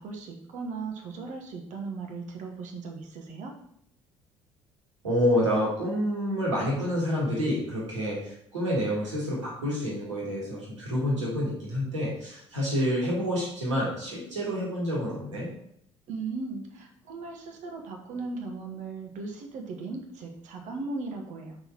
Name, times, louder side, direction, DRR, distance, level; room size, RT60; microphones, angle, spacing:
voice 1, 0.0-3.5 16.1-21.6, right 3 dB, 50° right, 3 dB, 1.2 m, -37 dB
voice 2, 5.0-15.5, equal, 80° right, -5 dB, 1.8 m, -28 dB
5.5 x 4.1 x 4.5 m, 0.72 s
figure-of-eight pair, 55°, 15 cm